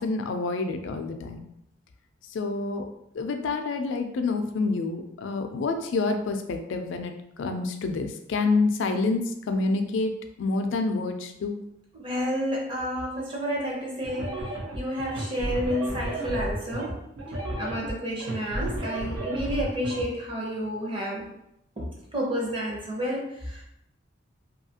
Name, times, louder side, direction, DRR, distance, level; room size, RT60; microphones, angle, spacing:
voice 1, 0.0-1.4 2.3-2.8 3.1-11.6, left 3 dB, 70° left, 6 dB, 0.3 m, -28 dB
voice 2, 11.9-17.1 17.6-21.3 21.8-23.6, equal, 25° right, -3 dB, 0.6 m, -30 dB
sound 1, 14.0-20.0, right 1 dB, 85° right, 0.8 m, -33 dB
2.7 x 2.4 x 2.7 m, 0.80 s
head